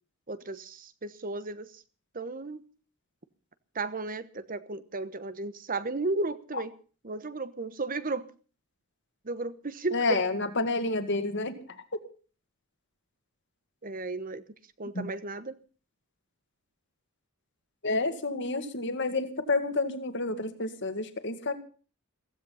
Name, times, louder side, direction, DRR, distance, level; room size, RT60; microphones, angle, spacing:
voice 1, 0.3-1.8 2.1-2.6 3.7-6.7 7.0-8.3 9.2-10.2 13.8-14.4 14.8-15.6, right 3 dB, 40° right, 13 dB, 1.1 m, -34 dB
voice 2, 9.9-11.6 15.0-15.1 17.8-21.5, left 3 dB, 55° left, 8 dB, 2.1 m, -29 dB
16.0 x 15.5 x 5.7 m, 0.40 s
head